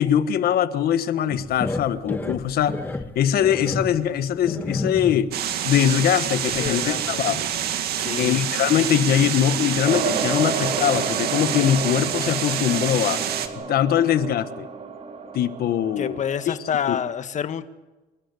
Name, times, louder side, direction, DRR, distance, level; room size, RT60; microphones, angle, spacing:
voice 1, 0.0-2.8 3.1-5.3 5.6-7.5 8.2-13.2 13.7-14.7 15.3-16.2 16.5-16.6 16.9-17.0, left 10 dB, 65° left, 12 dB, 1.4 m, -22 dB
sound 1, 1.3-5.4 5.8-5.9 6.4-7.1 7.5-7.6 8.0-8.1, left 2 dB, 10° left, 1.6 m, -31 dB
sound 2, 5.3-13.5, right 10 dB, 70° right, 2.2 m, -27 dB
voice 2, 6.5-7.2 8.0-8.4 16.0-17.7, left 8 dB, 45° left, 10 dB, 1.6 m, -28 dB
sound 3, 9.8-16.6, right 4 dB, 40° right, 2.7 m, -31 dB
27.5 x 13.5 x 9.9 m, 1.1 s
cardioid pair, 110°, 17 cm